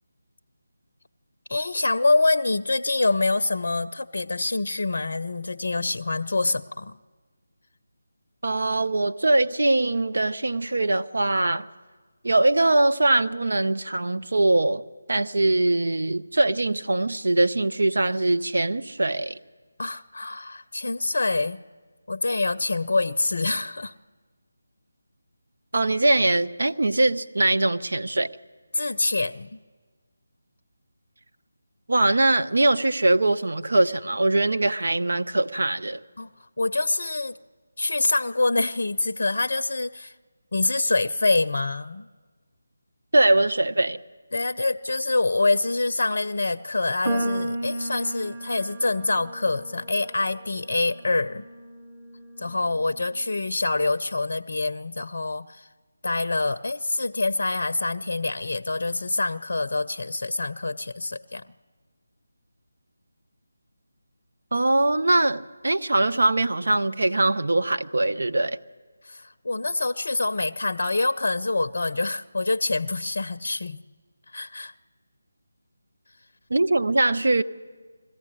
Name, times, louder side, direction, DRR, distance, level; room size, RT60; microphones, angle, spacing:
voice 1, 1.5-7.0 19.8-21.6 22.1-23.9 28.7-29.6 36.2-37.4 37.8-40.1 40.5-42.1 44.3-51.5 52.4-55.7 56.0-61.5 69.0-73.8 74.3-74.7, left 2 dB, 60° left, 10 dB, 0.5 m, -26 dB
voice 2, 8.4-11.7 12.2-14.8 15.1-19.4 25.7-28.3 31.9-36.0 43.1-44.0 64.5-68.6 76.5-77.4, right 2 dB, 65° right, 10 dB, 0.8 m, -22 dB
sound 1, 47.0-53.4, right 1 dB, 35° right, 2.7 m, -34 dB
21.0 x 14.5 x 9.7 m, 1.4 s
figure-of-eight pair, 160°, 0 cm